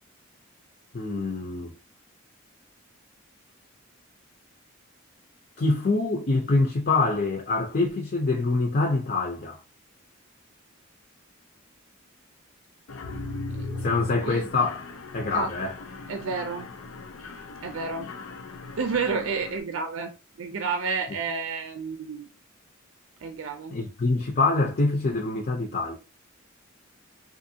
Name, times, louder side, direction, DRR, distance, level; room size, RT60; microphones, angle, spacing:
voice 1, 0.9-1.7 5.6-9.6 13.8-14.8 15.1-15.8 21.1-21.2 23.7-25.9, left 3 dB, 45° left, 0.6 m, -25 dB
Mechanisms, 12.9-19.6, left 3 dB, 90° left, 0.6 m, -38 dB
voice 2, 16.1-16.7 17.6-18.1 18.8-20.1 20.4-22.3 23.2-23.8, right 4 dB, 75° right, 0.5 m, -30 dB
3.5 x 2.5 x 2.7 m
head